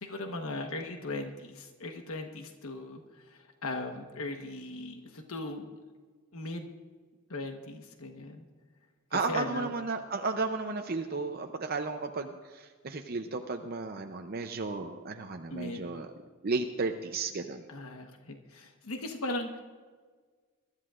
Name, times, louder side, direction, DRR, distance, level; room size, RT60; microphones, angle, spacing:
voice 1, 0.0-5.8 6.3-6.7 7.3-8.4 9.1-9.7 15.5-15.8 17.7-19.6, left 2 dB, 75° left, 4 dB, 1.2 m, -38 dB
voice 2, 9.1-16.1 16.4-17.6, right 3 dB, 45° right, 5 dB, 0.6 m, -33 dB
22.0 x 13.0 x 2.5 m, 1.5 s
head